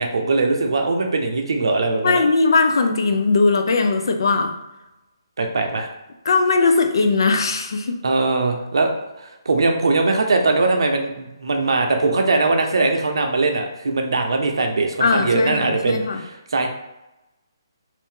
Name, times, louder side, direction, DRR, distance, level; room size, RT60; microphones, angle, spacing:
voice 1, 0.0-2.2 5.4-5.9 8.0-8.9 9.2-16.7, right 3 dB, 75° right, 3 dB, 0.6 m, -21 dB
voice 2, 2.0-4.5 6.3-8.0 15.0-16.2, left 4 dB, 65° left, 6 dB, 0.5 m, -19 dB
2.7 x 2.5 x 3.6 m, 0.96 s
hypercardioid pair, 160°, 2 cm